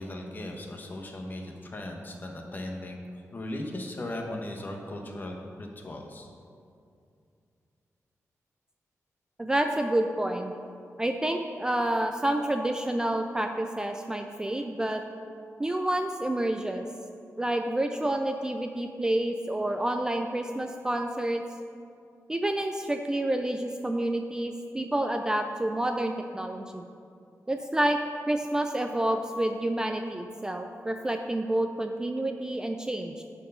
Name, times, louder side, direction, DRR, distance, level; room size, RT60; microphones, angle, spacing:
voice 1, 0.0-3.0 3.3-6.3, left 1 dB, 35° left, 2 dB, 1.0 m, -37 dB
voice 2, 9.4-10.5 11.0-15.0 15.6-16.9 17.4-21.4 22.3-26.9 27.5-28.0 28.3-33.2, right 1 dB, 10° right, 5 dB, 0.3 m, -29 dB
9.9 x 4.5 x 5.5 m, 2.4 s
wide cardioid pair, 155°, 6 cm